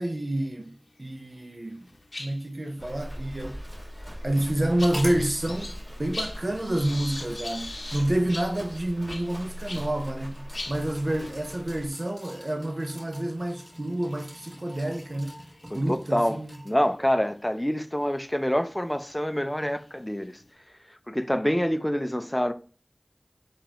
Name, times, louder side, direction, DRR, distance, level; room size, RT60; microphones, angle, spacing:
voice 1, 0.0-1.9 2.2-3.6 4.2-5.7 6.0-15.4 15.7-16.6, right 1 dB, 55° right, 0.6 m, -28 dB
sound 1, 1.0-1.5 1.8-10.0 10.3-10.4 10.5-16.4 17.0-17.2 18.1-18.2 18.7-20.5, left 2 dB, 85° left, 0.7 m, -42 dB
Livestock farm animals working animals, 2.8-11.9, equal, 5° right, 2.3 m, -40 dB
sound 2, 4.9-5.3 6.3-6.4 8.8-16.9 17.4-17.5, equal, 25° right, 1.1 m, -45 dB
voice 2, 15.9-16.4 16.6-20.4 21.1-22.5, equal, 15° left, 0.5 m, -26 dB
6.5 x 2.4 x 3.0 m
wide cardioid pair, 40°, 0 cm